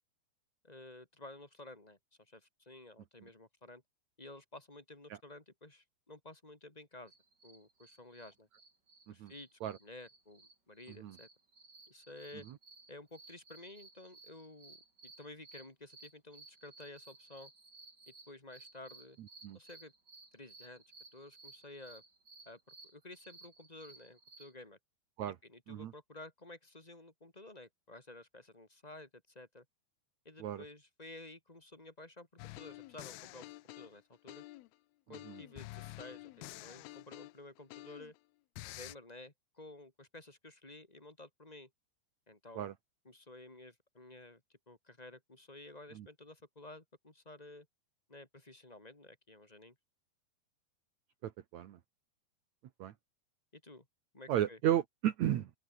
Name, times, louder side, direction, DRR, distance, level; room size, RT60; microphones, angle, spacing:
voice 1, 0.6-3.8 4.2-7.1 7.4-8.5 9.1-11.3 11.9-12.5 12.9-14.8 15.0-17.5 18.1-19.2 19.5-19.9 20.3-20.8 21.1-22.0 22.4-24.8 25.4-29.6 30.2-34.4 35.1-36.3 36.6-38.1 38.7-41.7 42.3-42.7 43.0-47.7 48.1-49.7 53.5-53.9 54.1-54.6, left 2 dB, 10° left, 2.1 m, -53 dB
sound 1, 7.1-24.5, right 3 dB, 25° right, 4.3 m, -58 dB
sound 2, 32.4-34.7 35.1-38.2 38.6-38.9, left 19 dB, 75° left, 2.4 m, -49 dB
voice 2, 51.2-51.8 52.8-52.9 54.3-55.5, right 11 dB, 65° right, 1.8 m, -33 dB
open air
omnidirectional pair, 4.8 m